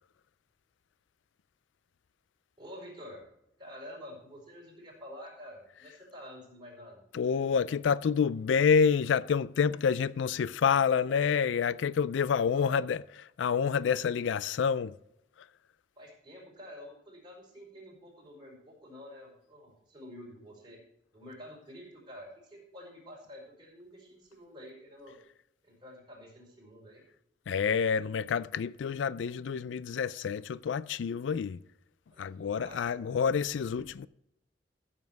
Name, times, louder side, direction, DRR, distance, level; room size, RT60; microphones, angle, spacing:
voice 1, 2.6-3.2 3.6-7.0 12.3-12.9 16.0-20.8 21.1-25.2 25.6-27.0 32.1-33.2, left 1 dB, 25° right, 4.7 m, -48 dB
voice 2, 7.1-13.0 13.4-15.0 27.5-31.6 32.2-34.1, left 6 dB, 80° left, 0.4 m, -28 dB
14.5 x 7.4 x 4.6 m
head